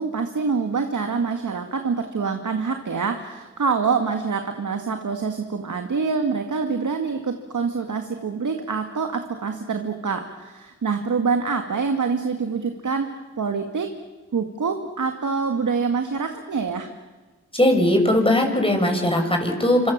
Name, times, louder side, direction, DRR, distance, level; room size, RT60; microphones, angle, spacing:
voice 1, 0.0-14.0 14.3-16.9, right 5 dB, 75° right, 6 dB, 2.1 m, -26 dB
voice 2, 17.5-19.9, left 1 dB, 15° left, 3 dB, 7.4 m, -19 dB
28.5 x 26.5 x 7.5 m, 1.3 s
cardioid pair, 50°, 30 cm